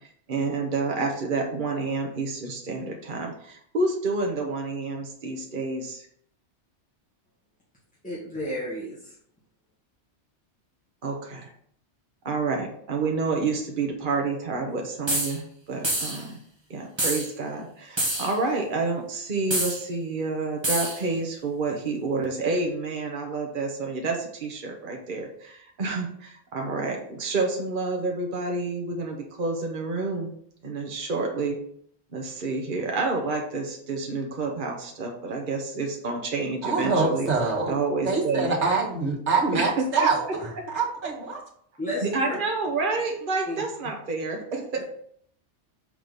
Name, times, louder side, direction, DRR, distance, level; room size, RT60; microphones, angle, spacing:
voice 1, 0.3-6.1 11.0-11.5 12.2-16.4 16.7-30.3 30.6-31.6 32.1-37.3 37.7-38.5 39.5-40.1 42.0-44.8, right 3 dB, 45° right, 1 dB, 1.2 m, -29 dB
voice 2, 8.0-9.1 41.8-42.3 43.5-43.6, equal, 5° left, -9 dB, 2.1 m, -32 dB
sound 1, 15.1-15.4 15.8-16.2 17.0-17.3 18.0-18.3 19.5-19.8 20.6-21.0, right 1 dB, 25° right, 1.6 m, -26 dB
voice 3, 36.6-37.7 38.1-40.2 40.7-41.4, right 4 dB, 70° right, -1 dB, 2.1 m, -24 dB
6.5 x 4.7 x 5.3 m, 0.64 s
omnidirectional pair, 1.2 m